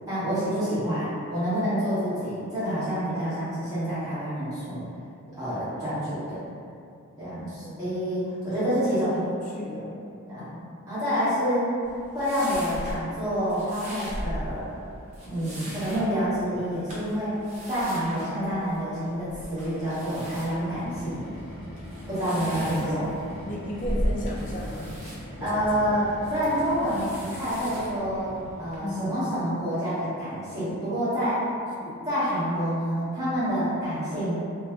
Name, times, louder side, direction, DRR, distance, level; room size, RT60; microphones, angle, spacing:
voice 1, 0.1-4.8 5.3-6.5 7.2-9.2 10.3-10.5 10.9-11.7 12.1-14.8 15.2-21.2 22.1-23.1 25.4-31.5 32.0-34.4, equal, 15° right, -14 dB, 0.9 m, -28 dB
voice 2, 8.8-10.0 10.3-10.6 15.4-15.6 18.1-18.2 22.2-23.1 23.5-24.9 25.3-25.5 25.8-26.0 28.8-29.1 31.8-31.9, left 1 dB, 35° left, -3 dB, 0.3 m, -36 dB
sound 1, 11.8-28.8, equal, 30° right, 0.5 m, -38 dB
sound 2, 20.0-28.8, equal, 50° right, 1.2 m, -41 dB
2.6 x 2.3 x 2.2 m, 2.5 s
head